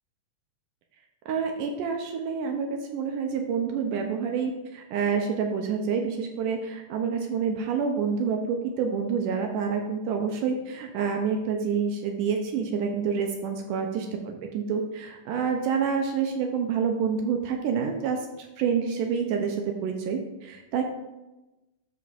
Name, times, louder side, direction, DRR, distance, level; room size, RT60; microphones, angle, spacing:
voice 1, 1.3-18.3 18.6-20.8, right 6 dB, 80° right, 3 dB, 2.1 m, -28 dB
13.5 x 5.2 x 2.6 m, 1.0 s
omnidirectional pair, 4.1 m